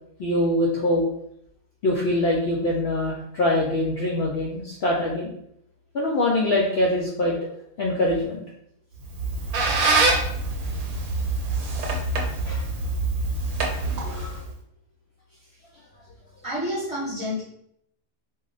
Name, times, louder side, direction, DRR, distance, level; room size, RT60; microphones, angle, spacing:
voice 1, 0.2-1.0 1.8-5.3 5.9-7.3 7.8-8.4 12.4-12.7 14.0-14.3, left 1 dB, 65° left, -3 dB, 0.6 m, -23 dB
Squeak, 9.0-14.5, right 3 dB, 85° right, 1.1 m, -25 dB
voice 2, 16.4-17.4, left 1 dB, 30° right, -7 dB, 0.7 m, -29 dB
2.4 x 2.1 x 3.8 m, 0.72 s
omnidirectional pair, 1.5 m